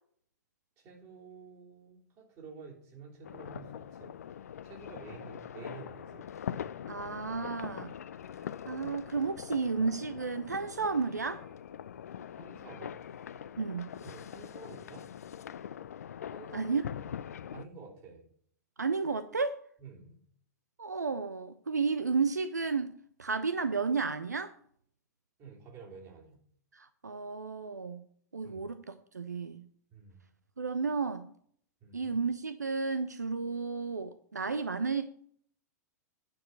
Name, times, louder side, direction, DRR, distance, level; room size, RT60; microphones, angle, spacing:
voice 1, 0.8-4.1 4.6-6.3 8.7-8.9 12.4-13.0 14.0-15.1 16.3-16.7 17.5-18.2 19.8-20.2 25.4-26.4 28.4-28.6 29.9-30.2 31.8-32.2, right 5 dB, 35° right, 3.0 m, -50 dB
sound 1, 3.2-17.7, left 9 dB, 65° left, 0.4 m, -43 dB
voice 2, 6.9-8.0 8.7-11.4 13.6-13.9 16.5-16.8 18.8-19.6 20.8-22.9 23.2-24.5 26.7-28.1 28.3-29.7 30.6-31.3 31.9-35.1, right 4 dB, 80° right, 0.5 m, -32 dB
9.4 x 4.6 x 7.5 m
figure-of-eight pair, 100°, 9 cm